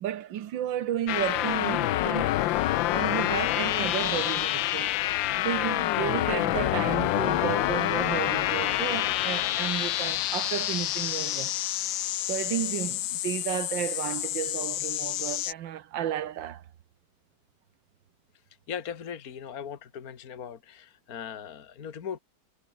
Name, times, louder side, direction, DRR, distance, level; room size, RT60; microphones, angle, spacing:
voice 1, 0.0-2.3 2.9-4.9 5.4-11.5 12.3-16.6, right 11 dB, 85° right, 1.7 m, -32 dB
sound 1, 1.1-15.5, left 15 dB, 85° left, 1.4 m, -28 dB
voice 2, 18.7-22.2, left 8 dB, 50° left, 2.0 m, -39 dB
omnidirectional pair, 2.0 m